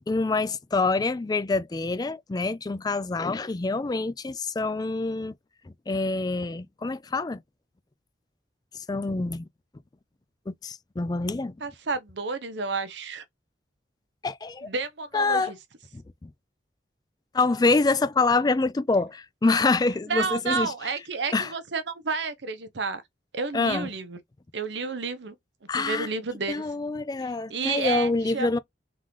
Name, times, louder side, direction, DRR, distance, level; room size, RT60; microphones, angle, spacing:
voice 1, 0.1-5.3 5.9-7.4 8.7-9.5 10.5-11.6 14.2-14.7 15.1-15.5 15.9-16.3 17.3-20.7 21.3-21.5 23.5-23.9 25.7-26.1 26.5-28.6, left 3 dB, 20° left, 0.3 m, -26 dB
voice 2, 11.6-13.2 14.6-15.6 20.1-23.0 23.3-24.2 24.5-25.3 25.7-26.6 27.5-28.5, right 4 dB, 70° right, 0.8 m, -30 dB
3.8 x 3.7 x 3.1 m
head